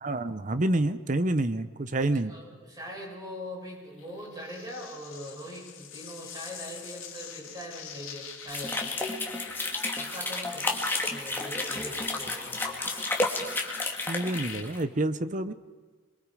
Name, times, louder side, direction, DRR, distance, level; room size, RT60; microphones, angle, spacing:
voice 1, 0.0-2.3 14.1-15.5, right 2 dB, 40° right, 12 dB, 0.9 m, -28 dB
voice 2, 2.1-8.9 10.0-12.6, equal, 20° right, -4 dB, 7.8 m, -42 dB
sound 1, 4.0-14.6, left 6 dB, 85° left, 2.3 m, -44 dB
sound 2, 8.5-14.8, left 2 dB, 10° left, 2.1 m, -31 dB
26.5 x 23.0 x 5.0 m, 1.4 s
head